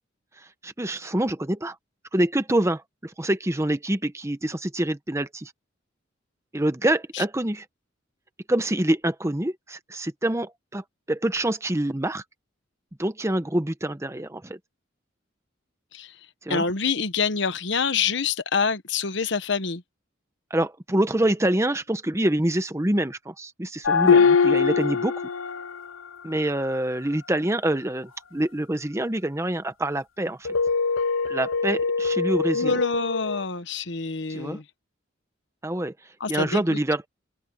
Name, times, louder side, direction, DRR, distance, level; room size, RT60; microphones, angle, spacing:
voice 1, 0.6-1.7 2.1-5.5 6.5-7.6 8.5-12.2 13.0-14.6 16.5-16.6 20.5-25.1 26.2-30.5 31.3-32.8 34.3-34.6 35.6-35.9 36.3-37.1, right 1 dB, 15° right, 1.0 m, -26 dB
voice 2, 16.5-19.8 32.5-34.6 36.2-36.8, left 5 dB, 65° left, 1.1 m, -26 dB
sound 1, 23.8-26.0 30.4-33.4, left 5 dB, 90° left, 0.7 m, -22 dB
open air
head